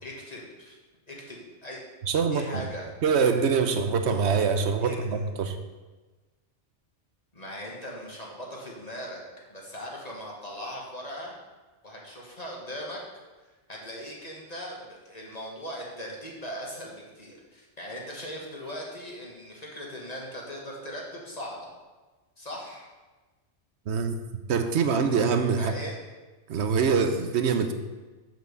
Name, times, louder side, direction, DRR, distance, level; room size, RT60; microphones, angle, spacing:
voice 1, 0.0-0.8 1.1-1.8 2.3-2.9 4.8-5.2 7.3-9.2 9.5-11.3 11.8-13.0 13.7-21.7 22.4-22.9 25.6-26.0, equal, 35° left, -3 dB, 1.8 m, -39 dB
voice 2, 2.0-2.6 3.0-5.6 23.9-24.2 24.5-25.7 26.5-27.7, right 5 dB, 70° right, 8 dB, 1.1 m, -24 dB
7.2 x 5.9 x 6.8 m, 1.2 s
omnidirectional pair, 1.2 m